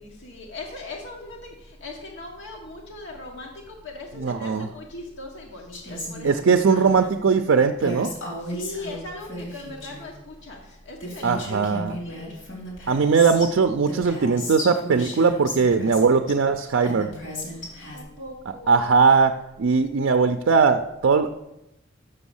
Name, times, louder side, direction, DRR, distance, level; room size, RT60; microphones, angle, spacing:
voice 1, 0.0-6.4 6.7-6.8 8.4-11.6 11.9-12.4 17.5-18.8, left 2 dB, 65° left, -1 dB, 1.3 m, -39 dB
voice 2, 4.2-4.7 6.2-8.1 11.2-12.0 12.9-17.1 18.7-19.3 19.6-21.4, right 5 dB, 65° right, 7 dB, 0.4 m, -20 dB
Female speech woman speaking, 5.7-6.9 7.8-10.1 10.7-10.8 11.0-13.5 13.9-16.3 16.8-18.0, left 1 dB, 80° left, 3.3 m, -35 dB
6.8 x 6.2 x 7.0 m, 0.89 s
head